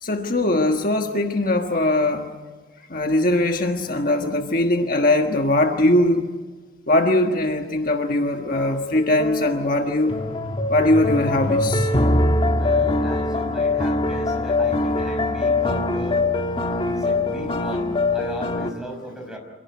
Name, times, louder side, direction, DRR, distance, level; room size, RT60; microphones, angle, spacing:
voice 1, 0.0-2.3 2.9-6.4 6.9-10.1 10.7-11.9, left 1 dB, 50° left, 4 dB, 1.5 m, -21 dB
sound 1, 8.5-18.7, left 2 dB, 30° left, 1.5 m, -23 dB
voice 2, 12.5-16.2 16.8-19.4, equal, 5° right, 2 dB, 5.5 m, -36 dB
27.0 x 18.0 x 9.5 m, 1.3 s
head